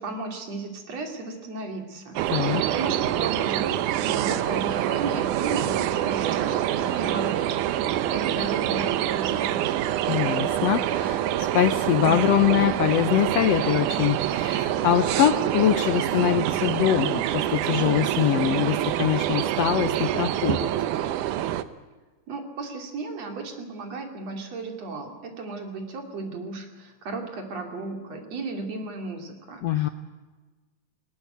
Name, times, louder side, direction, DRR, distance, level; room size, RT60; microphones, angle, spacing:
voice 1, 0.0-9.7 22.3-29.9, right 3 dB, 55° right, 4 dB, 3.6 m, -35 dB
sound 1, 2.2-21.6, right 12 dB, 75° right, 2.3 m, -26 dB
voice 2, 2.3-2.6 10.1-20.7 29.6-29.9, left 10 dB, 70° left, 9 dB, 1.6 m, -23 dB
19.5 x 19.5 x 9.3 m, 1.3 s
omnidirectional pair, 3.7 m